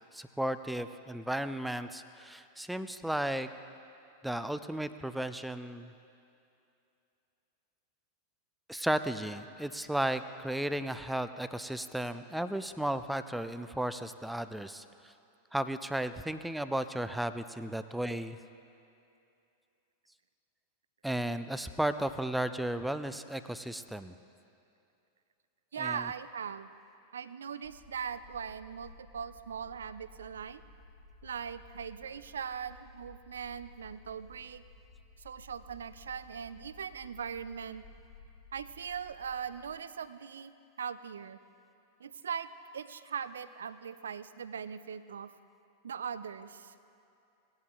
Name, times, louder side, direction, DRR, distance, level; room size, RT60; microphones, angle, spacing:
voice 1, 0.0-3.5 4.2-5.9 8.7-15.1 15.5-18.4 21.0-24.1 25.8-26.1, right 1 dB, 5° right, 11 dB, 0.4 m, -34 dB
voice 2, 25.7-26.7 27.1-30.6 31.2-34.6 35.2-37.8 38.5-40.5 40.8-41.4 42.0-45.3 45.8-46.7, right 7 dB, 65° right, 14 dB, 0.4 m, -40 dB
sound 1, 27.6-39.7, left 3 dB, 40° left, 1.9 m, -55 dB
18.5 x 11.0 x 2.4 m, 2.6 s
figure-of-eight pair, 90°, 0 cm